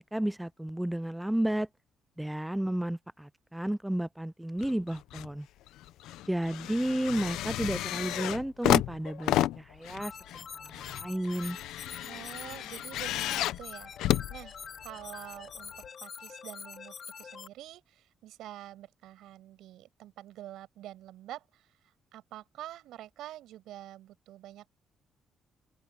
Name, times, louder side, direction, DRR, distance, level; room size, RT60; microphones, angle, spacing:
voice 1, 0.0-1.7 2.2-5.5 6.3-10.1 10.6-11.6, right 1 dB, 5° right, 0.4 m, -32 dB
sound 1, 4.6-5.3 5.7-15.1 15.8-15.9, left 14 dB, 90° left, 0.6 m, -32 dB
sound 2, 10.0-17.5, left 6 dB, 50° left, 2.4 m, -45 dB
voice 2, 12.0-13.9 14.3-24.7, right 13 dB, 85° right, 6.7 m, -47 dB
open air
cardioid pair, 90°, 0 cm